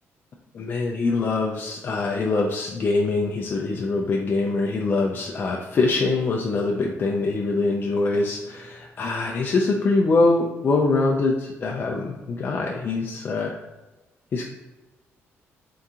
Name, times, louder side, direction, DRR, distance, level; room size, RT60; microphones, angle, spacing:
voice 1, 0.5-13.6 14.3-14.4, left 3 dB, 40° left, -1 dB, 0.4 m, -23 dB
3.7 x 2.8 x 3.6 m, 1.1 s
cardioid pair, 130°, 5 cm